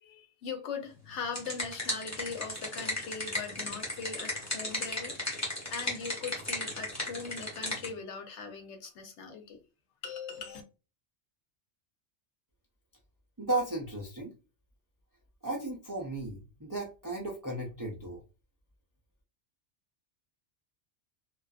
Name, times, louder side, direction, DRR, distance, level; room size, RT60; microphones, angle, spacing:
voice 1, 0.0-9.6 10.0-10.6, left 5 dB, 85° left, 1.0 m, -40 dB
sound 1, 1.0-7.9, left 1 dB, 15° left, 0.9 m, -35 dB
voice 2, 13.4-14.3 15.4-18.2, right 2 dB, 25° right, 0.5 m, -34 dB
2.5 x 2.4 x 2.3 m
omnidirectional pair, 1.2 m